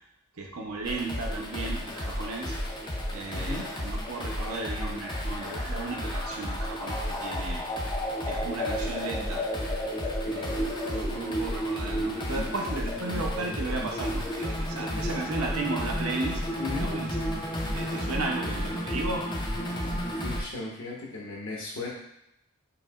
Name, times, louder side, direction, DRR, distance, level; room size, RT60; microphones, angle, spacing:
voice 1, 0.4-2.5 3.1-7.6 8.2-9.4 10.3-16.4 16.8-17.4 17.7-19.2, right 3 dB, 70° right, 1 dB, 0.7 m, -35 dB
sound 1, 0.8-20.4, equal, 20° left, 0.5 m, -32 dB
voice 2, 3.3-3.7 11.1-11.2 16.6-16.9 19.8-21.9, left 3 dB, 60° left, -3 dB, 1.1 m, -37 dB
4.7 x 2.9 x 2.4 m, 0.79 s
head